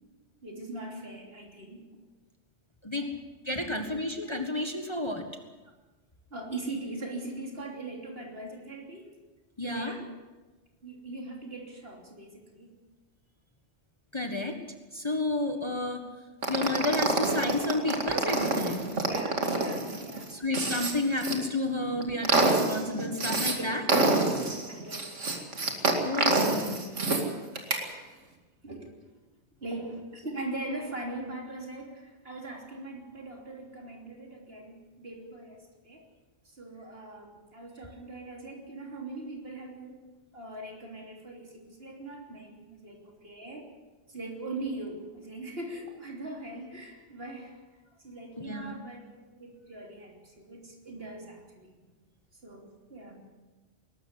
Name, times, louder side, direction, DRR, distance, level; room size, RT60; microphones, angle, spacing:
voice 1, 0.4-1.8 3.6-3.7 6.3-9.1 9.6-10.0 10.8-12.8 19.0-20.3 23.5-23.8 24.7-25.2 28.6-28.9 29.6-36.0 36.4-40.0 40.3-43.7 44.1-47.6 48.0-49.0 49.3-51.7 52.4-53.2, right 2 dB, 55° right, 1 dB, 3.5 m, -41 dB
voice 2, 3.4-5.3 9.6-9.9 14.1-14.6 14.9-16.0 16.5-18.9 20.3-23.8 26.0-26.9 48.4-48.7, left 2 dB, 25° left, 5 dB, 1.6 m, -31 dB
sound 1, 16.4-21.3 21.8-23.6 23.9-27.2 27.6-27.8, right 3 dB, 90° right, 2.7 m, -27 dB
21.5 x 13.0 x 9.6 m, 1.2 s
omnidirectional pair, 1.2 m